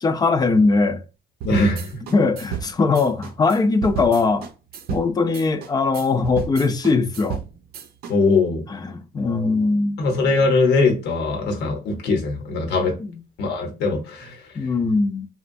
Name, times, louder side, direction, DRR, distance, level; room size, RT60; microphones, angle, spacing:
voice 1, 0.0-1.0 2.1-4.5 4.9-7.4 8.7-10.0 14.6-15.3, left 3 dB, 25° left, 0.4 m, -20 dB
voice 2, 1.4-2.0 8.1-8.6 10.0-13.0 13.4-14.5, left 3 dB, 85° left, 1.0 m, -21 dB
sound 1, 1.4-8.1, right 8 dB, 65° right, 0.6 m, -33 dB
2.9 x 2.2 x 2.6 m
cardioid pair, 110°, 17 cm